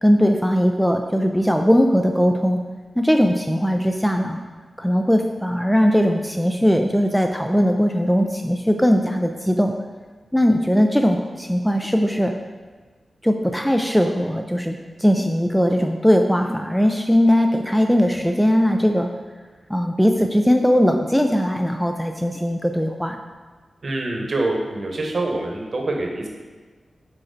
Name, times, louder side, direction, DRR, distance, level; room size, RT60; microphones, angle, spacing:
voice 1, 0.0-2.6 3.0-4.4 4.8-9.7 10.3-12.3 13.2-19.1 19.7-23.2, equal, ahead, 4 dB, 0.3 m, -19 dB
voice 2, 23.8-26.3, right 2 dB, 50° right, 1 dB, 0.9 m, -25 dB
6.4 x 4.3 x 3.8 m, 1.4 s
wide cardioid pair, 155°, 0 cm